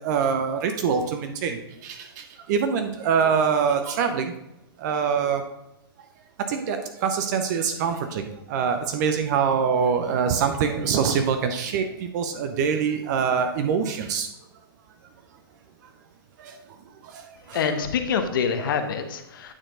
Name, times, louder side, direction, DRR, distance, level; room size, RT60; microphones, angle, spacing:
voice 1, 0.0-4.3 4.8-5.4 6.5-14.3 16.4-16.6 17.0-17.8, right 6 dB, 45° right, 7 dB, 0.7 m, -25 dB
voice 2, 17.5-19.5, left 6 dB, 60° left, 8 dB, 0.9 m, -26 dB
8.9 x 4.4 x 3.8 m, 0.86 s
hypercardioid pair, 120°, 13 cm